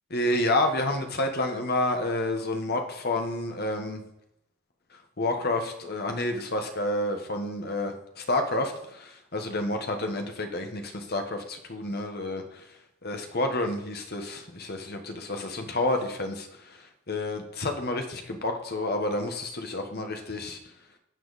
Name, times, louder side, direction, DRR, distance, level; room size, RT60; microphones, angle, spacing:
voice 1, 0.1-4.0 5.2-12.6 13.0-20.6, left 2 dB, 45° left, 4 dB, 1.3 m, -29 dB
11.0 x 7.5 x 4.1 m, 0.79 s
head